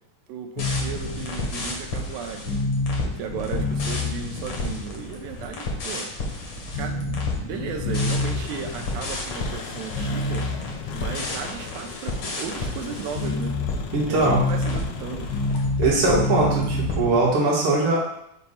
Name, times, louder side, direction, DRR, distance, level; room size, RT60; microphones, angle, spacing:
voice 1, 0.3-2.6 3.0-6.1 6.7-10.4 10.9-13.6 14.1-15.3, right 6 dB, 90° right, 5 dB, 2.4 m, -35 dB
sound 1, 0.6-17.3, left 2 dB, 60° left, 1.6 m, -28 dB
Engine, 7.9-16.0, left 6 dB, 80° left, 2.4 m, -41 dB
voice 2, 13.9-14.4 15.8-18.0, right 3 dB, 50° right, -4 dB, 1.9 m, -21 dB
6.5 x 2.6 x 5.5 m, 0.76 s
omnidirectional pair, 4.0 m